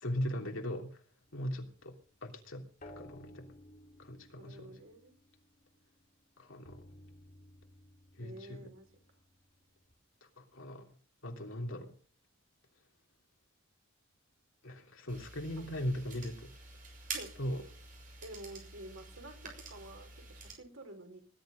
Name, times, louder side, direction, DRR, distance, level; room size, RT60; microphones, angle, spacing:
voice 1, 0.0-1.0 1.3-2.7 2.9-3.5 4.0-4.8 6.4-6.8 8.2-8.7 10.4-10.9 11.2-11.9 14.6-16.5 17.4-17.6, equal, 75° left, 2 dB, 3.1 m, -39 dB
sound 1, 1.2-6.1 6.6-9.9, left 1 dB, 45° left, 3.0 m, -57 dB
voice 2, 4.4-5.1 8.2-8.9 15.8-15.9 17.1-17.3 18.2-21.2, right 1 dB, 90° right, 4 dB, 4.7 m, -50 dB
sound 2, 15.1-20.5, right 4 dB, 40° right, 7.0 m, -47 dB
20.0 x 11.5 x 5.2 m, 0.43 s
head